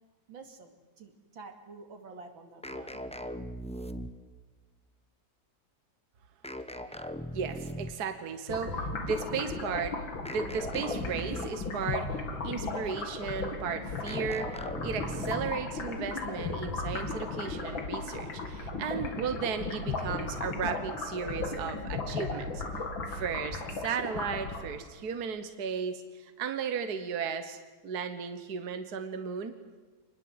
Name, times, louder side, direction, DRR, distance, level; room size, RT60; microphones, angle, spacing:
voice 1, 0.3-0.7 1.0-3.0, right 3 dB, 80° right, 5 dB, 3.1 m, -48 dB
sound 1, 2.6-4.4 6.4-8.1 10.2-11.8 14.1-15.7, equal, 5° left, 0.5 m, -39 dB
voice 2, 7.3-10.0 10.3-12.1 12.4-22.6 23.1-29.5, right 6 dB, 55° right, 8 dB, 1.7 m, -35 dB
sound 2, 8.5-24.9, left 3 dB, 75° left, 3.1 m, -36 dB
26.0 x 21.0 x 8.0 m, 1.3 s
omnidirectional pair, 2.1 m